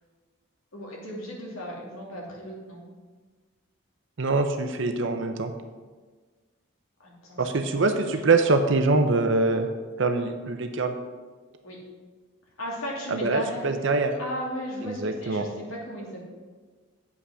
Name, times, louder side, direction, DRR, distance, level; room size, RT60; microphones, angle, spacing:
voice 1, 0.7-2.8 7.0-7.8 11.6-11.8 12.6-13.6 14.2-16.2, equal, 80° left, -3 dB, 2.7 m, -35 dB
voice 2, 4.2-5.5 7.4-9.7 10.0-11.0 13.1-14.2 14.8-15.4, right 3 dB, 60° right, 6 dB, 0.7 m, -24 dB
8.4 x 5.7 x 6.2 m, 1.4 s
head